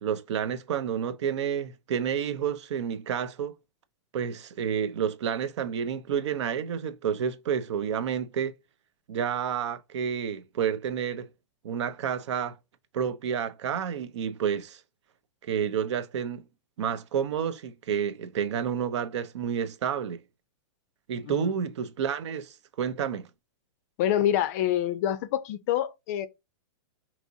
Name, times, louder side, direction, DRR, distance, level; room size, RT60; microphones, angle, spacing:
voice 1, 0.0-3.5 4.1-8.5 9.1-11.3 11.6-12.6 12.9-14.8 15.4-16.4 16.8-20.2 21.1-23.3, right 8 dB, 65° right, 0.7 m, -30 dB
voice 2, 24.0-26.3, left 11 dB, 30° left, 0.4 m, -26 dB
4.9 x 2.9 x 2.6 m
supercardioid pair, 165°, 16 cm